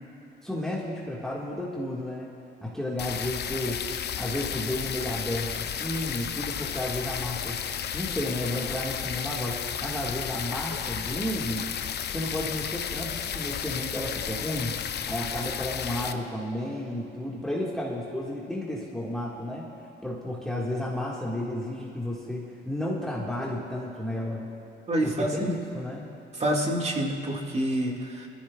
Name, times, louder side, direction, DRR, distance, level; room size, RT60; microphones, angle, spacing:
voice 1, 0.4-2.3 2.6-3.8 4.2-7.6 7.9-11.7 12.1-14.8 15.1-19.7 20.0-24.5 25.0-26.1, left 1 dB, ahead, -5 dB, 1.8 m, -32 dB
sound 1, 3.0-16.1, left 8 dB, 55° left, 0.6 m, -33 dB
voice 2, 24.9-25.5 26.4-28.3, right 1 dB, 35° right, 0 dB, 2.0 m, -27 dB
22.5 x 14.0 x 2.4 m, 2.8 s
cardioid pair, 90°, 20 cm